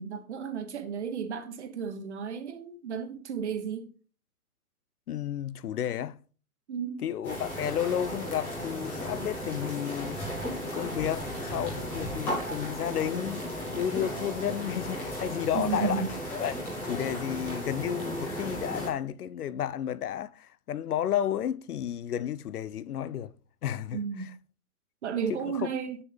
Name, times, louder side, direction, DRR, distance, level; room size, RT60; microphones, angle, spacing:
voice 1, 0.0-3.9 6.7-7.0 15.5-16.1 23.9-24.3 25.0-26.0, right 6 dB, 50° right, 1.3 m, -33 dB
voice 2, 5.1-6.2 7.0-10.2 10.7-16.1 16.3-16.6 16.8-23.3 23.6-24.3 25.3-25.7, left 10 dB, 85° left, 0.7 m, -32 dB
sound 1, 7.2-18.9, equal, 5° left, 0.7 m, -35 dB
7.3 x 6.8 x 3.4 m
hypercardioid pair, 165°, 44 cm